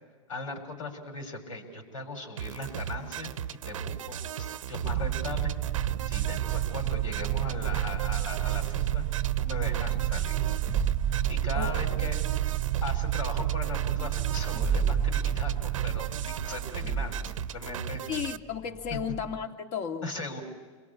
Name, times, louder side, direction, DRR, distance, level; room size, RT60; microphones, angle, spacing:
voice 1, 0.3-3.3 3.6-5.5 6.1-9.1 9.4-10.4 11.3-12.2 12.8-18.0 18.9-19.0 20.0-20.4, left 2 dB, 80° left, 4 dB, 6.9 m, -38 dB
sound 1, 2.4-18.4, right 9 dB, 80° right, 0.9 m, -37 dB
sound 2, 4.8-17.8, right 14 dB, 50° right, 0.9 m, -30 dB
sound 3, 10.5-13.7 13.9-14.0 14.3-19.4, right 5 dB, 10° right, 0.8 m, -34 dB
voice 2, 11.5-12.0 18.1-20.1, left 7 dB, 45° left, 4 dB, 2.6 m, -34 dB
29.0 x 23.0 x 8.6 m, 1.4 s
hypercardioid pair, 110°, 17 cm